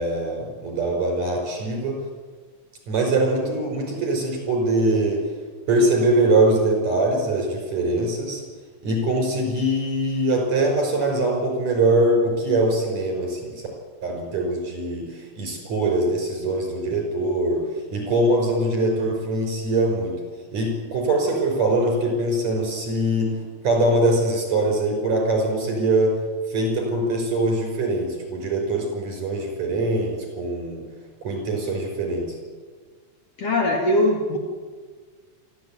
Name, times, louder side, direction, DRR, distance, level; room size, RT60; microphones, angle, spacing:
voice 1, 0.0-2.0 2.9-5.2 5.7-8.4 8.8-13.6 14.0-17.6 17.9-20.2 20.5-26.1 26.5-30.8 31.2-32.4, right 2 dB, 70° right, 2 dB, 7.3 m, -22 dB
voice 2, 33.4-34.4, left 1 dB, 55° left, 1 dB, 3.2 m, -21 dB
27.0 x 13.0 x 9.4 m, 1.5 s
omnidirectional pair, 3.4 m